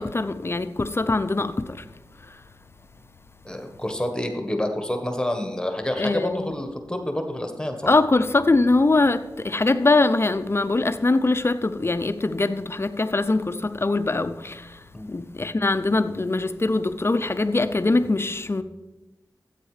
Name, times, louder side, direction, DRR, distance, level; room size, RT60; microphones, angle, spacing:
voice 1, 0.0-1.9 2.2-2.4 6.0-6.6 7.9-18.6, left 2 dB, 35° left, 0.6 m, -22 dB
voice 2, 3.4-7.9 14.9-15.1, left 1 dB, 10° left, 1.4 m, -28 dB
13.0 x 8.3 x 5.0 m
wide cardioid pair, 80°, 7 cm